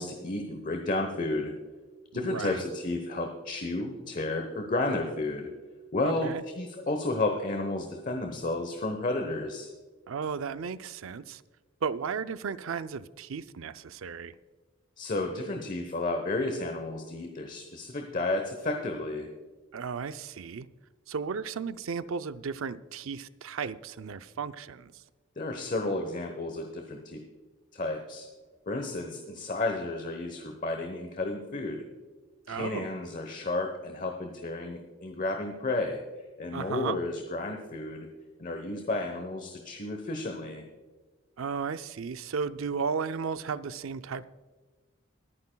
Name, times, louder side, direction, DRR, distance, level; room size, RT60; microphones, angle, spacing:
voice 1, 0.0-1.5 2.1-5.5 5.9-6.3 6.5-9.7 15.0-19.3 25.4-27.2 27.7-28.3 28.7-31.9 32.5-36.0 36.4-38.1 38.4-40.6, left 2 dB, 40° left, 1.0 m, -32 dB
voice 2, 2.1-2.6 6.0-6.4 10.1-11.4 11.8-14.3 19.7-20.7 21.1-24.9 32.5-32.9 36.5-37.0 41.4-44.2, right 6 dB, 75° right, 0.5 m, -34 dB
23.5 x 9.5 x 2.3 m
head